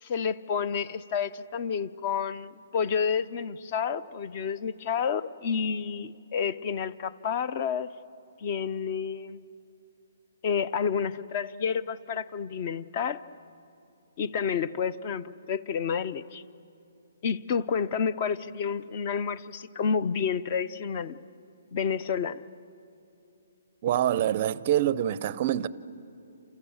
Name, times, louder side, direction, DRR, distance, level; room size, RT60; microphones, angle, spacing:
voice 1, 0.0-7.9 8.4-9.4 10.4-13.2 14.2-16.4 17.2-21.2 21.7-22.4, left 6 dB, 30° left, 0.6 m, -30 dB
voice 2, 23.8-25.7, right 11 dB, 30° right, 0.5 m, -25 dB
29.0 x 28.5 x 7.1 m
hypercardioid pair, 170°, 0 cm